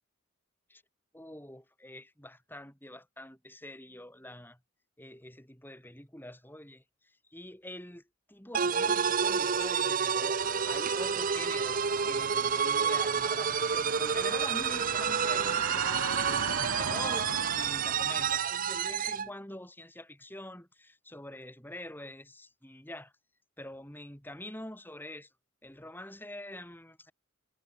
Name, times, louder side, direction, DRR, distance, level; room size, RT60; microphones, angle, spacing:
voice 1, 1.1-4.6 5.0-8.0 8.3-23.1 23.6-25.3 25.6-27.1, left 1 dB, 10° left, 5.6 m, -45 dB
sound 1, 8.5-19.3, right 7 dB, 40° right, 0.8 m, -29 dB
sound 2, 10.4-18.4, right 4 dB, 70° right, 5.5 m, -39 dB
head